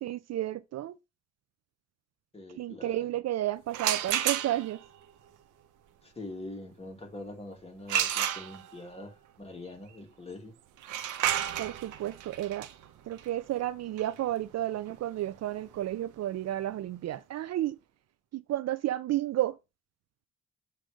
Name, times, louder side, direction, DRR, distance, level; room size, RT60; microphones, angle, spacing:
voice 1, 0.0-1.0 2.6-4.8 11.6-12.7 13.1-17.8 18.3-19.6, right 13 dB, 60° right, 0.5 m, -32 dB
voice 2, 2.3-3.0 6.0-10.6, left 2 dB, 20° left, 2.4 m, -44 dB
sound 1, 3.7-4.9 7.9-8.9 10.8-16.5, right 10 dB, 85° right, 1.0 m, -32 dB
7.6 x 3.3 x 5.1 m
cardioid pair, 90°, 30 cm